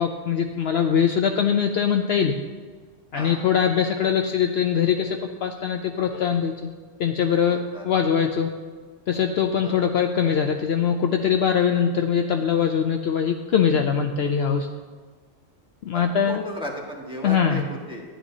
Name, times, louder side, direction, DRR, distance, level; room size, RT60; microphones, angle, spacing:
voice 1, 0.0-2.3 3.1-6.5 7.0-7.6 7.8-8.5 9.1-14.7 15.8-16.4 17.2-17.6, left 7 dB, 65° left, 5 dB, 0.7 m, -22 dB
voice 2, 15.9-18.0, equal, 5° right, -3 dB, 1.4 m, -35 dB
12.0 x 9.9 x 2.7 m, 1.5 s
omnidirectional pair, 1.3 m